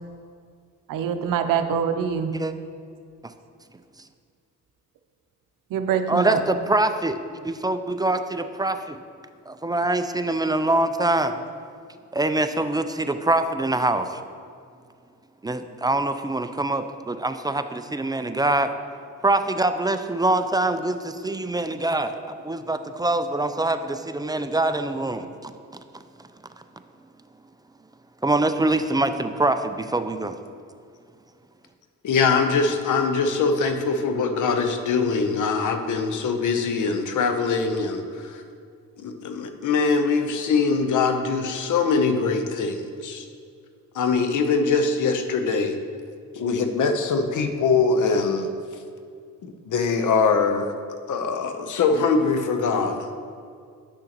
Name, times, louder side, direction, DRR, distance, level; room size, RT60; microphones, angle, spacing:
voice 1, 0.9-2.3 5.7-6.4, right 8 dB, 80° right, 8 dB, 0.6 m, -24 dB
voice 2, 6.1-7.2 7.4-9.0 9.5-11.3 12.1-14.2 15.4-18.7 19.2-25.5 28.2-30.3, right 2 dB, 15° right, 9 dB, 0.4 m, -24 dB
voice 3, 32.0-38.4 39.0-43.3 43.9-45.8 46.3-48.5 49.4-50.7 51.1-53.1, left 4 dB, 65° left, 7 dB, 0.8 m, -23 dB
9.7 x 6.4 x 2.9 m, 2.3 s
cardioid pair, 75°, 33 cm